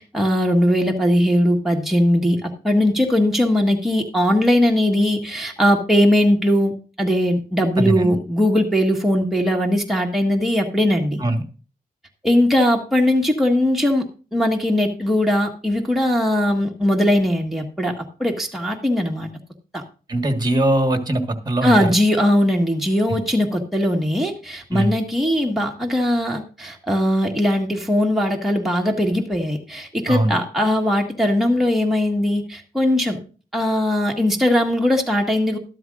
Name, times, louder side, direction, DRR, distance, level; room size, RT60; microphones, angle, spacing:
voice 1, 0.0-6.7 7.0-11.2 12.2-14.0 14.3-19.3 19.7-19.8 21.6-33.2 33.5-35.6, left 1 dB, ahead, 0 dB, 1.6 m, -19 dB
voice 2, 7.8-8.2 11.2-11.4 20.1-21.9 24.7-24.9 30.1-30.4, right 1 dB, 25° right, 7 dB, 1.6 m, -21 dB
12.5 x 12.5 x 2.5 m, 0.36 s
wide cardioid pair, 100°, 16 cm